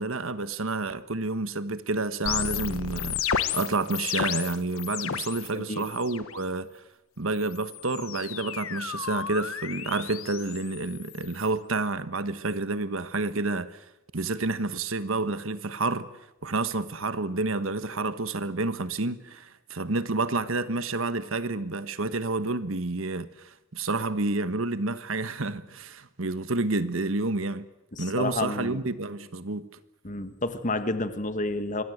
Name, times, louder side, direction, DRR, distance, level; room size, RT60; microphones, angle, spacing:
voice 1, 0.0-6.7 7.2-13.8 14.1-16.1 16.4-27.7 28.0-29.7, right 3 dB, 70° right, 1.4 m, -29 dB
sound 1, 2.3-5.5 5.8-6.3 7.4-11.5, left 8 dB, 80° left, 1.3 m, -33 dB
voice 2, 5.5-5.8 27.9-28.8 30.0-31.8, left 2 dB, 40° left, 1.7 m, -30 dB
26.0 x 21.0 x 8.1 m
head